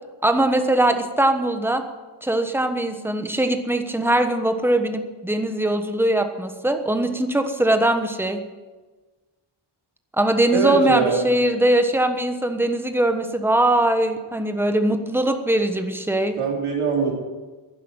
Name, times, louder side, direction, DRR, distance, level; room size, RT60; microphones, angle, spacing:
voice 1, 0.2-1.8 2.2-8.4 10.1-16.4, right 1 dB, 5° right, 7 dB, 1.2 m, -21 dB
voice 2, 10.5-11.3 16.4-17.1, right 4 dB, 85° right, -1 dB, 3.8 m, -22 dB
11.0 x 10.5 x 8.9 m, 1.3 s
wide cardioid pair, 130°, 50 cm